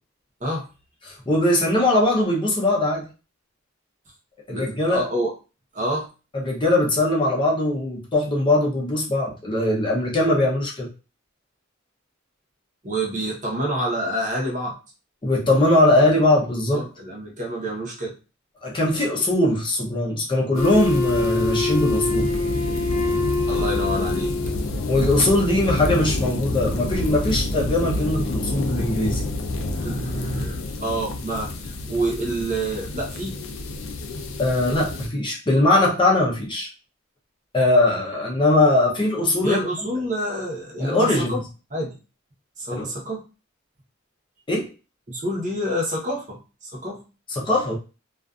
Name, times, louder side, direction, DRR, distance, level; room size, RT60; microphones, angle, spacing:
voice 1, 1.0-3.0 4.5-5.1 6.3-10.9 15.2-16.9 18.6-22.3 24.9-29.2 34.4-36.7 37.5-39.6 40.8-41.4 42.7-42.9 44.5-44.7 47.3-47.8, left 1 dB, 25° left, -3 dB, 0.6 m, -21 dB
voice 2, 4.5-5.3 5.7-6.1 12.8-14.7 16.7-18.1 23.5-24.3 29.7-33.3 39.4-41.4 41.7-42.0 42.6-43.2 45.1-47.0, right 1 dB, 40° right, -2 dB, 0.9 m, -28 dB
sound 1, 20.5-35.1, left 2 dB, 70° left, 0.4 m, -28 dB
Wind instrument woodwind instrument, 20.6-24.7, left 3 dB, 55° left, 0.8 m, -25 dB
2.4 x 2.4 x 2.3 m, 0.32 s
head